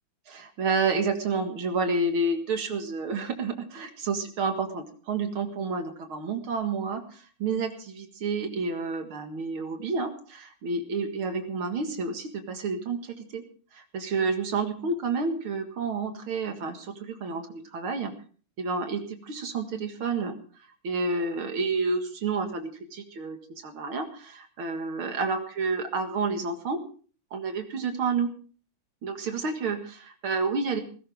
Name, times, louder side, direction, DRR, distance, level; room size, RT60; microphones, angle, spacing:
voice 1, 0.3-13.4 13.7-18.1 18.6-20.3 20.8-23.4 23.6-26.8 27.3-28.3 29.0-30.8, right 4 dB, 80° right, 5 dB, 2.7 m, -30 dB
19.5 x 16.5 x 3.6 m, 0.40 s
omnidirectional pair, 2.3 m